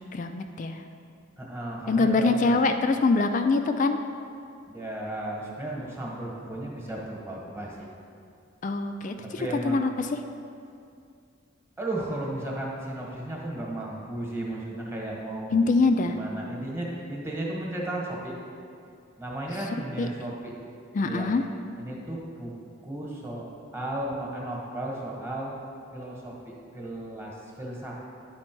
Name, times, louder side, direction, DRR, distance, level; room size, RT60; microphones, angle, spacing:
voice 1, 0.1-0.8 1.9-4.0 8.6-10.1 15.5-16.2 20.0-20.1 20.9-21.4, left 3 dB, 40° left, 7 dB, 0.3 m, -24 dB
voice 2, 1.4-2.6 4.7-7.9 9.2-9.8 11.8-15.5 16.0-18.3 19.2-20.5 21.0-21.3 21.8-22.5 22.8-23.5 23.7-25.6 25.9-28.0, right 1 dB, 15° right, -3 dB, 1.1 m, -34 dB
10.0 x 4.3 x 4.5 m, 2.4 s
head